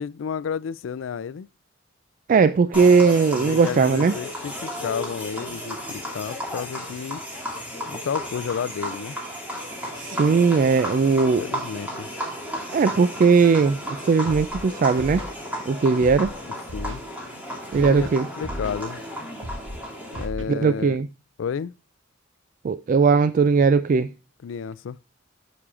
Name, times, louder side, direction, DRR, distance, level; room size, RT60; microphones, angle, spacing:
voice 1, 0.0-1.5 3.4-7.2 7.9-9.2 11.4-12.1 16.7-17.0 17.8-18.1 18.4-19.0 20.1-21.0 21.4-21.8 24.4-25.0, left 7 dB, 70° left, 0.3 m, -31 dB
voice 2, 2.3-4.1 10.0-11.4 12.7-15.2 15.7-16.3 17.7-18.3 20.5-21.1 22.6-24.1, right 5 dB, 45° right, 0.3 m, -19 dB
sound 1, 2.7-20.3, equal, 10° right, 2.4 m, -34 dB
Scratching (performance technique), 14.3-14.6 15.0-15.3 16.0-16.3 16.7-17.0 17.7-18.1 18.4-18.8 19.4-19.8 20.1-20.4, equal, 70° right, 1.2 m, -34 dB
9.5 x 7.2 x 2.4 m
head